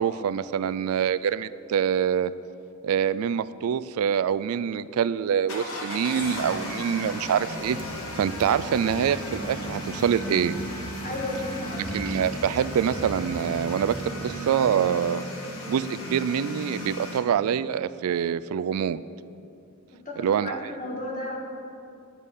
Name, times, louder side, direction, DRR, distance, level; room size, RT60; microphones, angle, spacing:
voice 1, 0.0-2.3 2.8-7.8 8.2-10.6 11.9-14.0 14.2-15.2 15.7-19.0 20.2-20.7, right 8 dB, 75° right, 16 dB, 0.3 m, -25 dB
sound 1, 5.5-17.2, equal, 75° left, 1.6 m, -35 dB
sound 2, 7.6-14.1, equal, 25° right, 1.1 m, -40 dB
voice 2, 11.0-12.2 19.9-21.4, left 2 dB, 35° left, -1 dB, 1.8 m, -34 dB
10.5 x 8.1 x 5.5 m, 2.6 s
head